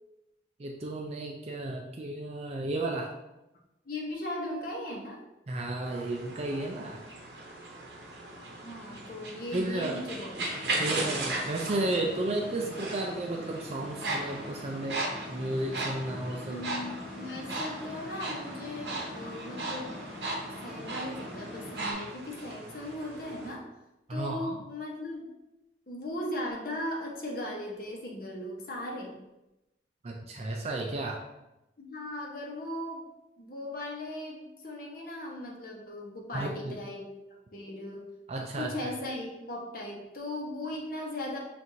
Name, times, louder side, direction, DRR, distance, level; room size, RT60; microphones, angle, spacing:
voice 1, 0.6-3.1 5.5-7.0 9.5-10.0 10.7-16.6 24.1-24.6 30.0-31.2 36.3-36.7 38.3-38.7, right 2 dB, 35° right, 1 dB, 0.3 m, -33 dB
voice 2, 3.9-5.2 8.6-10.3 16.5-20.0 20.6-23.7 24.1-25.3 25.9-29.2 31.8-33.1 33.4-38.1 38.6-41.4, left 1 dB, 50° left, -1 dB, 0.9 m, -38 dB
sound 1, 5.8-23.5, right 2 dB, 70° right, 0.8 m, -38 dB
sound 2, 10.3-21.9, left 1 dB, 5° right, 1.1 m, -43 dB
5.9 x 2.5 x 2.7 m, 0.94 s
head